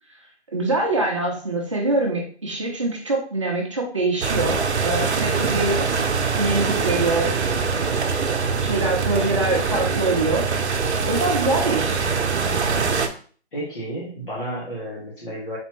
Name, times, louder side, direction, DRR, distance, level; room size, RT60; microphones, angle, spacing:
voice 1, 0.5-5.8 6.4-7.3 8.6-10.5 11.1-12.0, right 2 dB, 25° right, -1 dB, 0.8 m, -24 dB
sound 1, 4.2-13.1, right 5 dB, 75° right, 0.7 m, -23 dB
voice 2, 13.5-15.6, right 1 dB, 50° left, -7 dB, 1.8 m, -32 dB
4.2 x 3.1 x 3.1 m, 0.43 s
hypercardioid pair, 175°, 34 cm